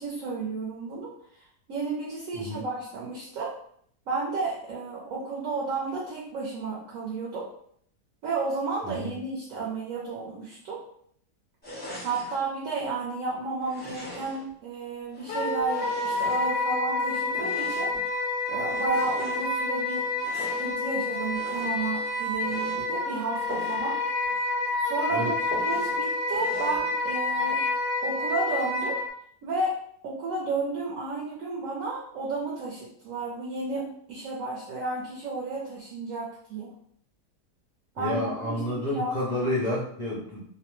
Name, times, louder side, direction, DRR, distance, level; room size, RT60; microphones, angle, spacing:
voice 1, 0.0-3.5 4.1-7.5 8.2-10.8 12.0-18.0 18.5-24.3 24.8-27.6 28.0-29.0 29.4-29.8 30.0-36.7 37.9-39.4, right 3 dB, 65° right, -4 dB, 0.9 m, -32 dB
sound 1, 11.6-12.4 13.6-14.5 15.1-16.8 17.3-18.0 18.6-19.5 20.1-20.7 21.3-21.9 22.3-22.8 23.5-23.9 24.2-24.3 24.7-24.8 25.5-26.0 26.3-26.8, left 1 dB, 10° left, 0.5 m, -41 dB
Wind instrument woodwind instrument, 15.3-29.1, left 2 dB, 90° left, 1.2 m, -28 dB
voice 2, 38.0-40.4, left 1 dB, 70° left, -7 dB, 0.4 m, -30 dB
2.7 x 2.1 x 3.0 m, 0.65 s
omnidirectional pair, 1.7 m